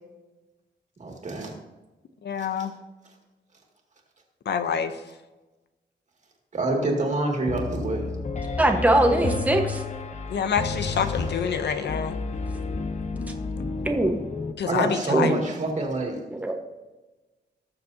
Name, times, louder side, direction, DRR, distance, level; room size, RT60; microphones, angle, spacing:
voice 1, 1.0-1.5 2.4-2.5 6.5-8.0 10.7-11.2 11.5-11.6 14.7-16.2, right 2 dB, 40° right, 1 dB, 2.2 m, -27 dB
voice 2, 2.2-2.7 4.5-4.9 10.3-12.2 14.6-15.4, left 7 dB, 70° left, 9 dB, 0.7 m, -27 dB
Piano, 7.5-14.5, left 4 dB, 40° left, 0.8 m, -31 dB
voice 3, 8.6-9.8 13.8-14.2 15.1-15.4 16.3-16.5, right 1 dB, 10° right, 3 dB, 1.2 m, -21 dB
19.0 x 7.0 x 2.7 m, 1.1 s
wide cardioid pair, 125°, 18 cm